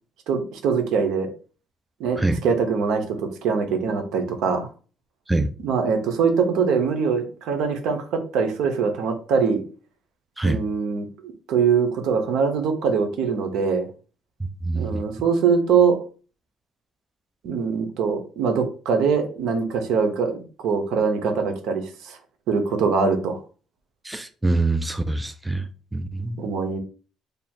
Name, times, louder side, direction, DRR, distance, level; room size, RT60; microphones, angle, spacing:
voice 1, 0.3-1.3 2.0-4.7 5.6-9.6 10.4-13.9 14.7-16.0 17.4-22.2 22.5-23.4 26.4-26.8, right 5 dB, 75° right, 6 dB, 0.8 m, -23 dB
voice 2, 14.6-15.0 24.0-26.4, right 2 dB, 10° right, 9 dB, 0.3 m, -24 dB
3.4 x 2.3 x 4.3 m, 0.38 s
cardioid pair, 125°, 0 cm